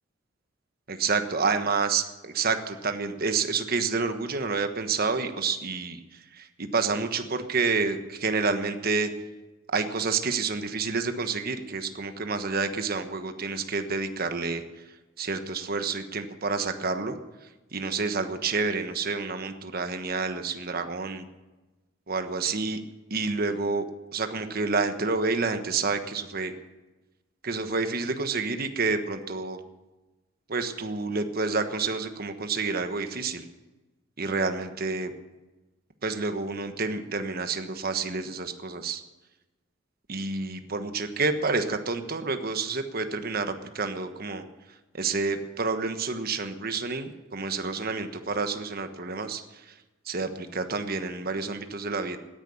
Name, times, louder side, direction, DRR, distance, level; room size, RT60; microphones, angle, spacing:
voice 1, 0.9-9.1 9.7-14.6 15.2-17.2 17.7-21.2 22.1-22.8 23.1-23.8 24.1-26.5 27.4-29.6 30.5-33.5 34.2-35.1 36.0-39.0 40.1-44.4 44.9-49.4 49.7-49.8 50.1-52.2, right 4 dB, 50° right, 8 dB, 1.2 m, -29 dB
17.5 x 10.5 x 7.0 m, 1.1 s
head